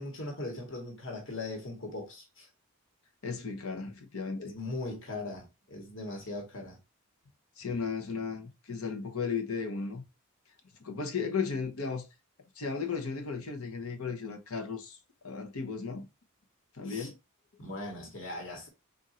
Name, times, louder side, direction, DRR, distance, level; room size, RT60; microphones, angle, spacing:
voice 1, 0.0-2.5 4.4-6.8 16.8-17.1 17.6-18.7, left 2 dB, 55° left, 1.5 m, -39 dB
voice 2, 3.2-4.5 7.6-10.0 10.8-12.1 12.6-15.0 15.2-16.1 16.7-17.2, left 5 dB, 75° left, 0.9 m, -35 dB
3.8 x 2.6 x 4.2 m
head